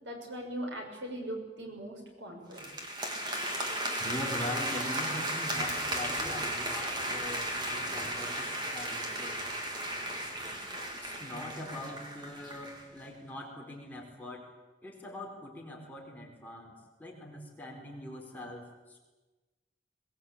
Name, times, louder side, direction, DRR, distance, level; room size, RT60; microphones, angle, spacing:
voice 1, 0.0-2.7, right 1 dB, 85° right, 2 dB, 6.4 m, -40 dB
sound 1, 2.5-12.8, right 1 dB, 25° right, 3.2 m, -35 dB
voice 2, 4.0-9.5 11.0-14.5 14.8-19.0, left 1 dB, 10° left, -2 dB, 4.6 m, -42 dB
22.0 x 20.5 x 8.7 m, 1.2 s
head